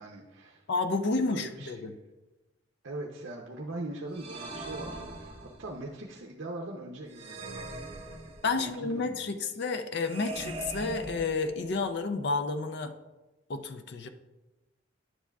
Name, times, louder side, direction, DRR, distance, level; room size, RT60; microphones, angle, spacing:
voice 1, 0.0-0.6 1.2-1.7 2.8-7.6 8.5-9.2, right 2 dB, 65° right, -1 dB, 0.6 m, -41 dB
voice 2, 0.7-1.9 8.4-12.9 13.5-14.1, left 3 dB, 55° left, 8 dB, 0.4 m, -30 dB
sound 1, 4.1-5.8 7.1-8.8 10.0-11.8, right 2 dB, 30° right, 1.1 m, -41 dB
10.0 x 7.1 x 2.3 m, 1.1 s
head